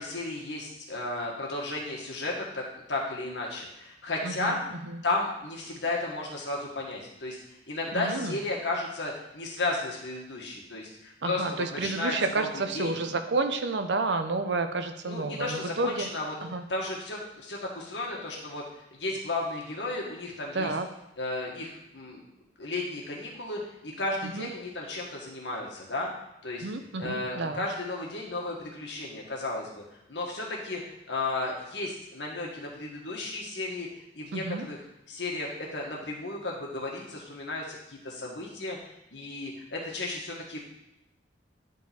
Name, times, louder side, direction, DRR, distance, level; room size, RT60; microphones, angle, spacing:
voice 1, 0.0-4.6 5.0-7.4 7.7-13.0 15.0-16.3 16.7-20.7 21.2-22.2 22.6-26.1 26.4-26.6 27.0-29.8 30.1-33.9 34.1-34.8 35.1-38.8 39.1-40.6, left 2 dB, 80° left, -2 dB, 1.7 m, -34 dB
voice 2, 4.2-4.6 4.8-5.0 7.9-8.4 11.2-16.1 16.4-16.6 20.5-20.9 24.2-24.5 26.6-27.7 34.3-34.7, right 3 dB, 75° right, 8 dB, 0.6 m, -30 dB
9.9 x 3.8 x 4.3 m, 0.86 s
head